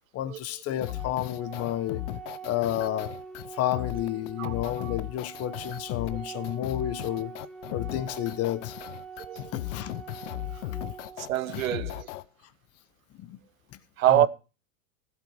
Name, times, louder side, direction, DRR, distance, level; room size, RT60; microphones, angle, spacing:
voice 1, 0.1-2.0 2.4-3.1 3.5-7.3 7.7-8.7 9.5-9.9 11.5-11.7 13.1-13.4 14.1-14.3, left 13 dB, 35° left, 1.3 m, -31 dB
sound 1, 0.8-12.2, left 17 dB, 60° left, 0.9 m, -37 dB
Organ, 0.8-11.8, right 6 dB, ahead, 1.0 m, -44 dB
voice 2, 4.4-4.9 9.2-9.5 11.2-12.1 14.0-14.3, right 12 dB, 80° right, 1.0 m, -26 dB
15.0 x 8.2 x 4.8 m
hypercardioid pair, 100°, 40 cm